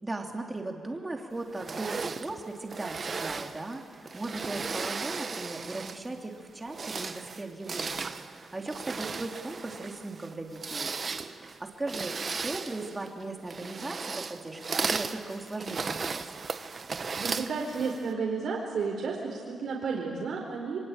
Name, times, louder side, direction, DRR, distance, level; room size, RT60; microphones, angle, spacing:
voice 1, 0.0-11.0 11.3-16.2, right 2 dB, 15° right, 2 dB, 2.9 m, -38 dB
sound 1, 1.5-6.1 6.6-18.1, right 4 dB, 35° right, 1.0 m, -36 dB
voice 2, 17.2-20.8, right 5 dB, 65° right, -2 dB, 4.4 m, -32 dB
27.0 x 23.5 x 9.0 m, 2.1 s
cardioid pair, 135°, 0 cm